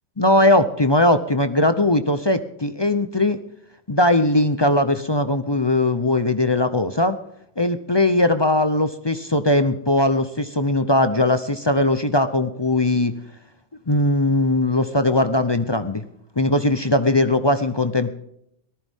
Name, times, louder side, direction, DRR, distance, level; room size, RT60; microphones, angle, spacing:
voice 1, 0.2-3.4 3.9-7.2 7.6-13.1 13.9-16.0 16.4-18.1, left 1 dB, 25° left, 10 dB, 0.7 m, -19 dB
18.5 x 14.5 x 3.7 m, 0.75 s
omnidirectional pair, 1.3 m